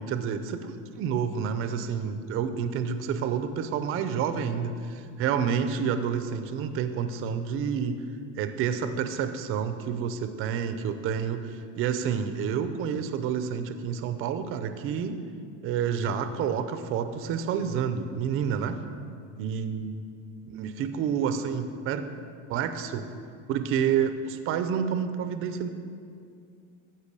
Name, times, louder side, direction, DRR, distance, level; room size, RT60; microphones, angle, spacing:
voice 1, 0.0-8.0 8.4-15.2 15.6-18.8 19.4-20.0 20.4-22.1 22.5-23.1 23.5-25.7, right 7 dB, 35° right, 10 dB, 0.6 m, -29 dB
14.0 x 5.5 x 6.8 m, 2.3 s
cardioid pair, 160°, 36 cm